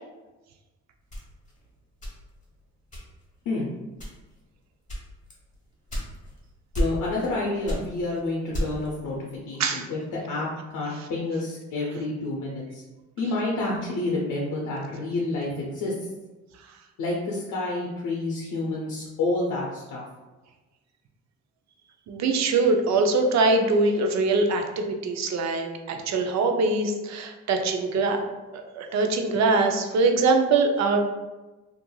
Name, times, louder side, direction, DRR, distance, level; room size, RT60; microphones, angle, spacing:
sound 1, 1.1-2.5 2.9-3.4 3.9-4.4 4.9-6.4 6.7-7.4 7.6-9.0, equal, 25° left, 1.1 m, -31 dB
voice 1, 6.8-12.8 13.2-16.1 17.0-20.0, left 2 dB, 85° left, -3 dB, 0.6 m, -29 dB
voice 2, 22.1-28.2 28.8-31.0, right 3 dB, 65° right, 4 dB, 0.5 m, -23 dB
3.0 x 2.5 x 2.2 m, 1.1 s
cardioid pair, 90°, 30 cm